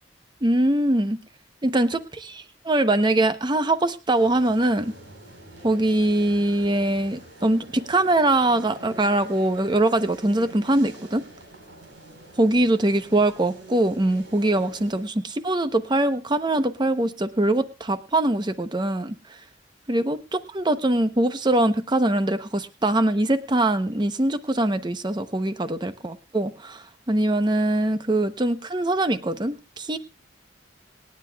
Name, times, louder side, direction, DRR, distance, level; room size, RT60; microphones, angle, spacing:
voice 1, 0.4-1.2 1.6-4.9 5.6-11.2 12.4-19.1 19.9-30.0, right 1 dB, 25° right, 11 dB, 0.7 m, -22 dB
sound 1, 4.1-15.0, right 2 dB, 80° right, 4.2 m, -45 dB
28.0 x 9.7 x 2.3 m, 0.28 s
head